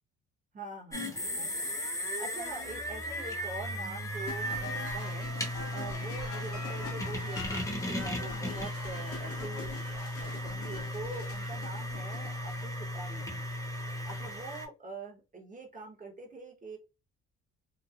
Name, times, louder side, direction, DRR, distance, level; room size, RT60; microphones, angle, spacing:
voice 1, 0.5-13.4 13.8-16.8, right 3 dB, 25° right, 0 dB, 1.2 m, -45 dB
sound 1, 0.9-14.7, equal, 10° left, 1.0 m, -36 dB
sound 2, 4.3-12.8, left 3 dB, 50° left, 0.9 m, -44 dB
3.1 x 2.3 x 2.4 m, 0.28 s
cardioid pair, 90°, 30 cm